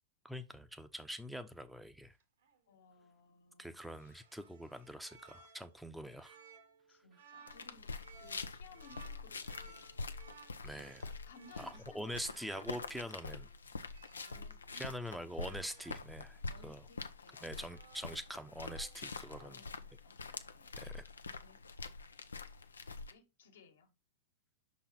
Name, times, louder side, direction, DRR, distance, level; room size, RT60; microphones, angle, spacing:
voice 1, 0.2-2.2 3.6-6.4 10.6-11.1 11.6-13.5 14.7-16.9 17.4-19.6 20.3-20.4 20.8-21.1, equal, ahead, 0.8 m, -44 dB
sound 1, 2.2-2.6 3.8-14.7 15.4-16.0 17.1-18.3 18.6-19.5, right 5 dB, 75° right, 2.0 m, -60 dB
voice 2, 2.7-4.2 6.9-10.1 11.3-12.4 14.3-14.9 16.5-17.7 19.4-20.7 21.4-22.2 23.0-23.9, left 5 dB, 70° left, 1.6 m, -61 dB
sound 2, 7.5-23.1, left 4 dB, 90° left, 0.6 m, -46 dB
5.9 x 4.2 x 4.2 m
hypercardioid pair, 110°, 0 cm